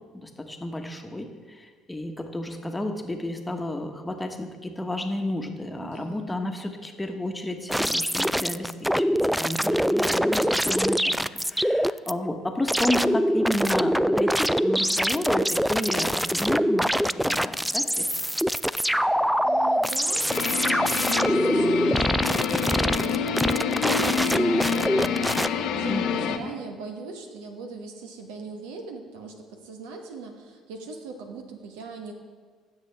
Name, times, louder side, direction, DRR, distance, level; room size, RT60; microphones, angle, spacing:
voice 1, 0.2-1.3 1.6-18.1 25.9-26.5, left 1 dB, 15° left, 4 dB, 1.2 m, -31 dB
voice 2, 5.8-6.4 19.1-32.1, right 4 dB, 75° right, 4 dB, 1.1 m, -39 dB
sound 1, 7.7-12.1 12.7-25.5, equal, ahead, 0.3 m, -24 dB
sound 2, 20.3-26.4, left 7 dB, 60° left, 0.7 m, -27 dB
16.0 x 6.7 x 3.5 m, 1.5 s
hypercardioid pair, 55°, 0 cm